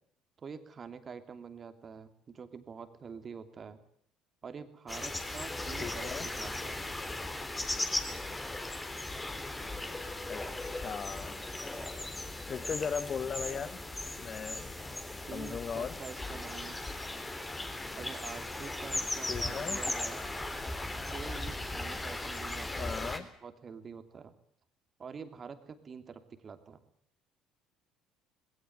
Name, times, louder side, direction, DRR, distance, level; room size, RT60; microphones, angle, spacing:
voice 1, 0.4-3.8 4.4-6.9 15.3-16.8 17.9-20.2 21.1-24.3 25.0-26.8, right 6 dB, 40° right, 9 dB, 2.9 m, -46 dB
sound 1, 4.9-23.2, left 2 dB, 15° left, 3.7 m, -37 dB
voice 2, 5.8-6.3 10.3-11.4 12.5-13.8 14.2-14.7 15.3-16.0 19.3-19.8 22.8-23.3, left 6 dB, 40° left, 17 dB, 1.0 m, -38 dB
20.5 x 17.5 x 9.4 m, 0.68 s
hypercardioid pair, 60°, 0 cm